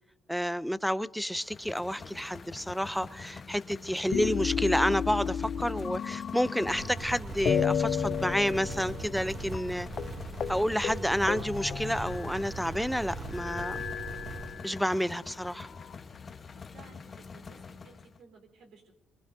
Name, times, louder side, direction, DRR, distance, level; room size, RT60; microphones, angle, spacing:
voice 1, 0.3-9.9 10.5-13.8 14.6-15.7, equal, ahead, 0.6 m, -30 dB
sound 1, 1.3-18.2, left 5 dB, 40° left, 1.1 m, -46 dB
sound 2, 4.1-7.1 7.5-9.3 9.5-9.7 10.0-10.1 10.4-10.6 10.8-12.6 13.3-14.9 15.6-16.5, left 8 dB, 60° left, 0.5 m, -33 dB
sound 3, 6.6-14.5, right 3 dB, 45° right, 2.7 m, -40 dB
voice 2, 16.5-18.9, right 4 dB, 80° right, 4.1 m, -56 dB
23.0 x 23.0 x 2.7 m
cardioid pair, 90°, 0 cm